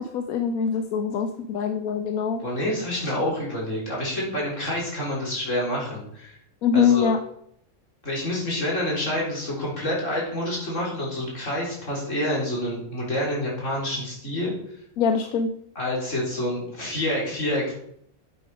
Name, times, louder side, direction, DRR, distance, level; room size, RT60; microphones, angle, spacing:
voice 1, 0.0-2.4 6.6-7.2 15.0-15.5, left 7 dB, 85° left, 7 dB, 1.2 m, -23 dB
voice 2, 2.4-6.4 6.7-7.1 8.0-14.5 15.8-17.7, left 1 dB, 60° left, -4 dB, 4.4 m, -28 dB
10.5 x 8.1 x 4.9 m, 0.72 s
omnidirectional pair, 1.4 m